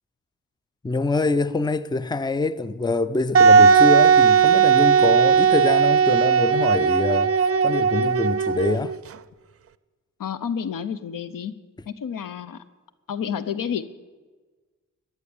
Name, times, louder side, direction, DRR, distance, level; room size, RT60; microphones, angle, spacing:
voice 1, 0.8-7.3 7.6-9.0, left 3 dB, 15° left, 0.6 m, -25 dB
Wind instrument woodwind instrument, 3.3-8.9, right 6 dB, 45° right, 0.5 m, -17 dB
voice 2, 10.2-11.5 11.9-12.6 13.1-13.8, left 7 dB, 75° left, 0.8 m, -29 dB
15.0 x 10.5 x 7.2 m
cardioid pair, 55°, 33 cm